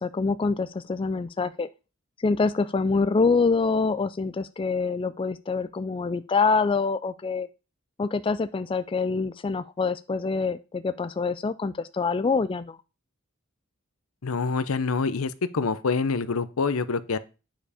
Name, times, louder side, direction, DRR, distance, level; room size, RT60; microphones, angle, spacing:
voice 1, 0.0-1.7 2.2-7.5 8.0-12.8, left 4 dB, 25° left, 13 dB, 0.3 m, -25 dB
voice 2, 14.2-17.2, left 4 dB, 80° left, 15 dB, 0.7 m, -26 dB
9.0 x 5.0 x 4.9 m, 0.31 s
head